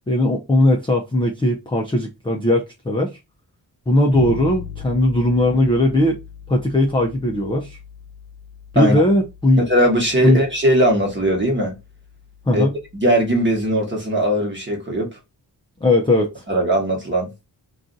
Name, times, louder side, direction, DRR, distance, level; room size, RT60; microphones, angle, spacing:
voice 1, 0.1-3.1 3.9-6.2 6.5-7.8 8.7-9.6 10.2-10.4 12.5-12.7 15.8-16.4, left 1 dB, 15° left, 0.4 m, -18 dB
Bass guitar, 4.1-13.8, left 8 dB, 70° left, 0.7 m, -39 dB
voice 2, 9.7-11.7 12.5-12.7 12.9-15.2 16.5-17.3, right 1 dB, 25° right, 1.1 m, -19 dB
2.5 x 2.4 x 3.8 m
wide cardioid pair, 135°, 41 cm